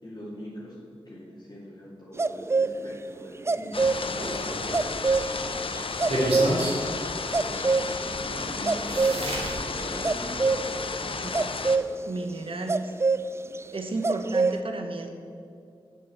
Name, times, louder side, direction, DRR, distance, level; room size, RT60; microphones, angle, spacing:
voice 1, 0.0-0.8 1.0-5.3 7.4-7.7 8.0-10.5 11.1-11.6, equal, 40° left, -7 dB, 2.4 m, -43 dB
sound 1, 2.2-2.7 3.2-11.9 12.7-13.2 13.6-13.7 14.0-14.6, right 4 dB, 25° right, 0.3 m, -26 dB
sound 2, 3.7-11.8, left 4 dB, 60° left, 0.6 m, -33 dB
sound 3, 3.9-5.3 6.0-6.7 8.2-8.3 8.8-9.5, right 1 dB, 85° right, 3.1 m, -29 dB
voice 2, 12.1-12.9 13.7-15.1, right 2 dB, 65° right, 4 dB, 1.2 m, -32 dB
7.8 x 7.7 x 8.2 m, 2.4 s
wide cardioid pair, 65°, 10 cm